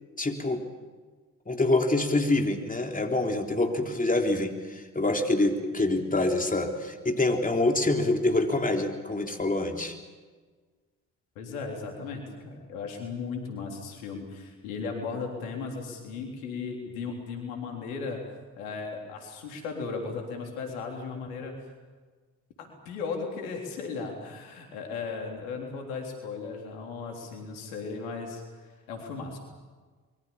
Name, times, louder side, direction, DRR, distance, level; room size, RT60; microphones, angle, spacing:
voice 1, 0.2-0.6 1.5-10.0, left 2 dB, 20° left, 3 dB, 3.5 m, -26 dB
voice 2, 11.4-18.2 18.6-21.6 22.6-29.4, left 4 dB, 85° left, 2 dB, 3.7 m, -36 dB
26.0 x 23.0 x 7.1 m, 1.4 s
hypercardioid pair, 45°, 41 cm